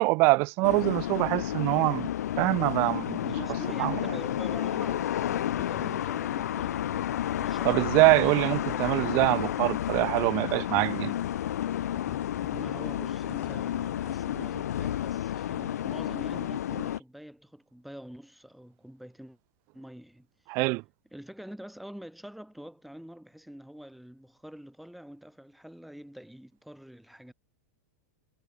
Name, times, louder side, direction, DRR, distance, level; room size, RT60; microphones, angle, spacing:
voice 1, 0.0-2.1 2.4-3.4 3.8-4.0 7.6-11.1 20.5-20.8, right 26 dB, 30° right, 0.7 m, -24 dB
sound 1, 0.6-17.0, left 11 dB, 85° left, 0.8 m, -31 dB
voice 2, 3.2-8.3 8.6-8.9 12.5-19.4 19.7-20.3 21.1-27.3, equal, ahead, 2.7 m, -45 dB
sound 2, 5.6-14.5, left 14 dB, 20° left, 7.7 m, -48 dB
supercardioid pair, 175°, 9 cm